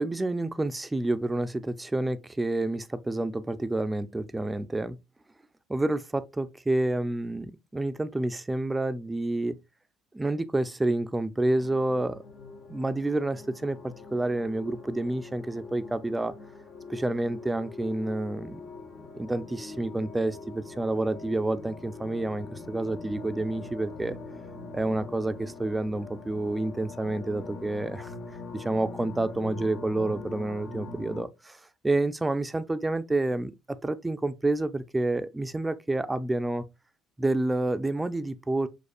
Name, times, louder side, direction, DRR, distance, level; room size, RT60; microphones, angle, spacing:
voice 1, 0.0-5.0 5.7-9.6 10.1-12.2 12.7-16.3 16.9-18.6 19.1-24.2 24.7-28.1 28.5-31.6 31.8-36.7 37.2-38.7, right 2 dB, 15° right, 0.5 m, -29 dB
sound 1, 11.4-31.2, left 3 dB, 55° left, 0.7 m, -43 dB
6.3 x 2.4 x 2.4 m
hypercardioid pair, 65°, 0 cm